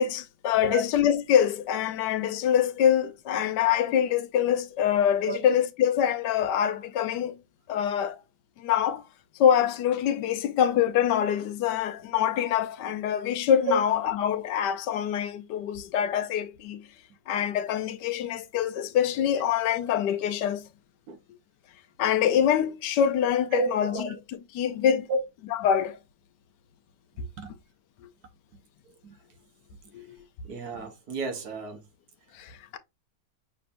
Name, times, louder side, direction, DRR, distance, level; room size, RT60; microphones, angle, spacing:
voice 1, 0.0-7.4 7.7-8.2 8.6-9.0 9.4-16.8 17.3-20.6 22.0-24.2 24.5-25.1 25.5-25.9 29.9-30.1 32.3-32.8, left 9 dB, 80° left, 1.2 m, -25 dB
voice 2, 23.5-24.2 24.9-25.2 27.4-27.5 29.0-29.2 30.4-31.8, right 2 dB, 65° right, 1.4 m, -31 dB
6.0 x 3.4 x 2.5 m
omnidirectional pair, 1.8 m